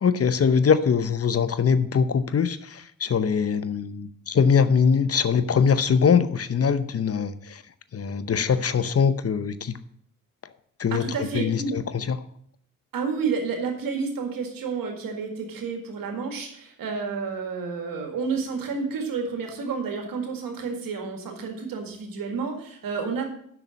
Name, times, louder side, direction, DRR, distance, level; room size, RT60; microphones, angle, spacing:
voice 1, 0.0-7.6 7.9-9.8 10.8-11.1 11.3-12.2, left 6 dB, 45° left, 14 dB, 0.8 m, -22 dB
voice 2, 10.9-11.7 12.9-23.3, right 5 dB, 80° right, 4 dB, 2.0 m, -30 dB
6.9 x 6.1 x 7.2 m, 0.66 s
cardioid pair, 55°, 34 cm